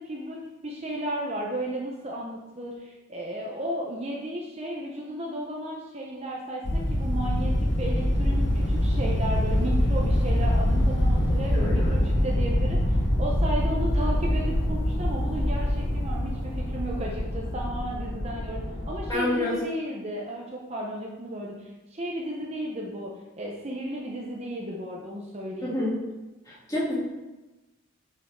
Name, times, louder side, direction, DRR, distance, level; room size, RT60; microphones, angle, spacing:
voice 1, 0.0-25.7, right 1 dB, 30° right, -2 dB, 0.8 m, -34 dB
sound 1, 6.6-19.1, left 1 dB, 55° left, 1.1 m, -25 dB
voice 2, 11.5-12.0 19.1-19.5 25.6-26.0 26.5-27.0, left 1 dB, 15° left, -8 dB, 2.6 m, -28 dB
8.3 x 5.7 x 3.7 m, 1.1 s
head